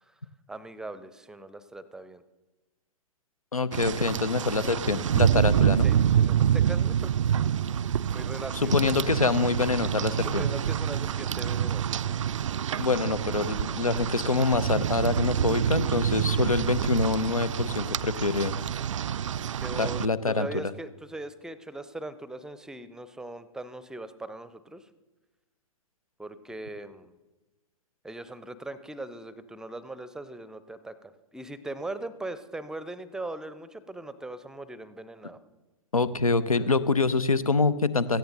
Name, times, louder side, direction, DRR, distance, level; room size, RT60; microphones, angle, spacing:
voice 1, 0.5-2.2 4.4-4.5 5.8-7.3 8.1-8.9 10.4-12.2 19.6-24.9 26.2-27.1 28.0-35.4 36.6-36.7, right 2 dB, 5° right, 14 dB, 0.6 m, -40 dB
voice 2, 3.5-5.9 8.5-10.4 12.8-18.6 19.8-20.6 35.9-38.2, left 3 dB, 80° left, 16 dB, 0.8 m, -25 dB
Rain, 3.7-20.1, right 9 dB, 60° right, 0.4 m, -27 dB
17.0 x 14.5 x 4.0 m, 1.1 s
figure-of-eight pair, 105°, 18 cm